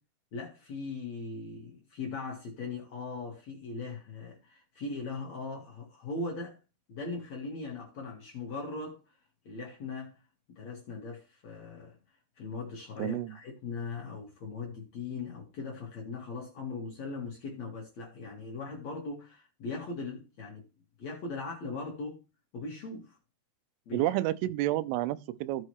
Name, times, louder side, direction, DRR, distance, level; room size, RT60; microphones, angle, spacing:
voice 1, 0.3-6.6 6.9-9.0 9.4-10.2 10.5-11.9 12.4-20.6 21.0-22.2 22.5-23.2 23.8-24.2, left 3 dB, 65° left, 1.7 m, -39 dB
voice 2, 13.0-13.4 23.9-25.7, right 15 dB, 80° right, 3.0 m, -30 dB
15.5 x 5.5 x 3.2 m
omnidirectional pair, 5.9 m